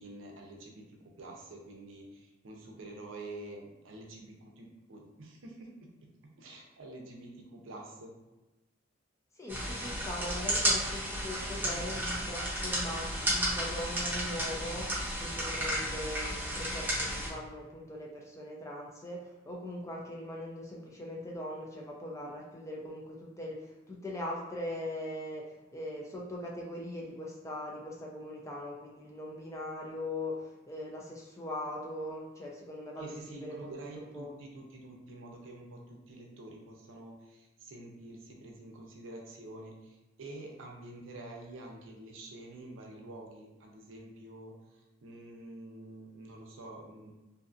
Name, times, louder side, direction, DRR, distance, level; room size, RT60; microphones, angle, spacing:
voice 1, 0.0-6.1 6.4-8.1 11.5-11.8 33.0-44.5 45.0-47.1, right 2 dB, 75° right, 1 dB, 0.5 m, -47 dB
voice 2, 9.4-14.9 15.2-34.3, left 1 dB, 15° left, -2 dB, 0.3 m, -41 dB
sound 1, 9.5-17.3, equal, 10° right, 0.7 m, -33 dB
2.5 x 2.4 x 2.5 m, 1.1 s
head